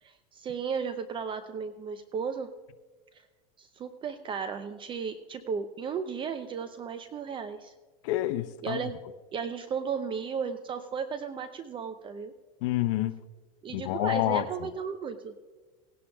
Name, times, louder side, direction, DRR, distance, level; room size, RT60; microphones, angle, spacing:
voice 1, 0.0-2.5 3.1-3.2 3.6-7.7 8.6-9.0 9.3-12.3 13.6-15.4, right 6 dB, 30° right, 0.6 m, -35 dB
voice 2, 8.0-8.9 12.6-13.2 13.7-14.5, left 15 dB, 65° left, 0.7 m, -28 dB
18.0 x 11.0 x 2.3 m
hypercardioid pair, 110°, 18 cm